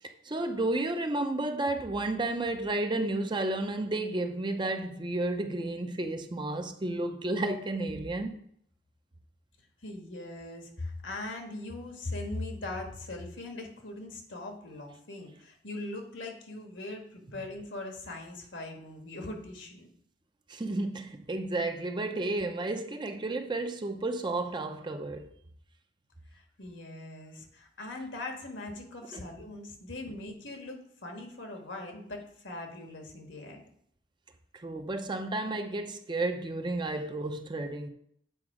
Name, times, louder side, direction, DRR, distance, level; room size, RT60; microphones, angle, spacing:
voice 1, 0.0-8.4 20.5-25.3 29.1-29.2 34.5-37.9, right 2 dB, 25° right, 0.6 m, -32 dB
voice 2, 9.8-19.9 26.3-33.6, left 2 dB, 75° left, 1.6 m, -40 dB
7.9 x 4.8 x 4.9 m
head